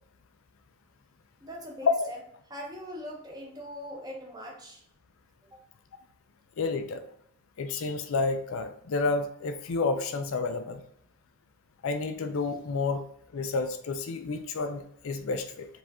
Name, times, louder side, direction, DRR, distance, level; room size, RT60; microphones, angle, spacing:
voice 1, 1.4-2.2 2.5-4.8 5.5-5.6, equal, 20° right, 0 dB, 0.7 m, -41 dB
voice 2, 6.6-7.0 7.6-10.8 11.8-13.0 13.3-15.7, left 4 dB, 65° left, 7 dB, 0.4 m, -30 dB
4.9 x 2.5 x 3.5 m, 0.66 s
head